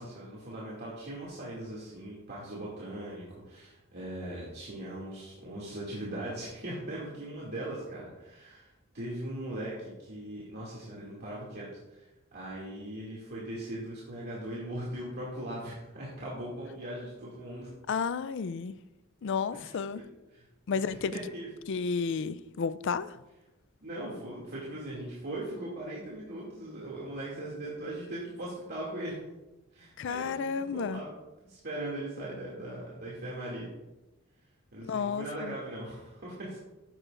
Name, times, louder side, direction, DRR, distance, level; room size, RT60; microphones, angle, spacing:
voice 1, 0.0-8.7 8.9-12.0 12.3-17.7 19.5-20.0 20.3-20.4 20.7-21.5 23.8-29.2 29.7-31.1 31.4-33.7 34.7-36.6, right 1 dB, 50° right, 2.4 m, -39 dB
voice 2, 17.9-18.8 19.2-20.0 20.7-21.1 21.7-23.2 30.0-31.0 34.9-35.5, left 5 dB, 60° left, 0.4 m, -32 dB
14.5 x 9.7 x 2.5 m
head